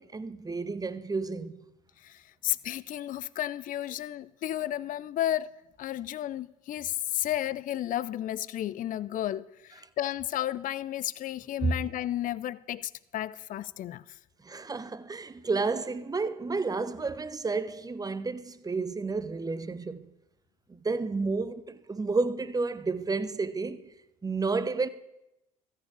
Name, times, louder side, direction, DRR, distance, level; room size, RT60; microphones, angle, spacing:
voice 1, 0.0-1.6 11.6-11.8 14.4-20.1 20.7-23.9 24.2-24.9, right 4 dB, 20° right, 0.9 m, -31 dB
voice 2, 2.4-5.5 5.8-9.5 10.0-14.0, left 12 dB, 45° left, 0.5 m, -32 dB
14.0 x 6.8 x 8.8 m
hypercardioid pair, 65°, 19 cm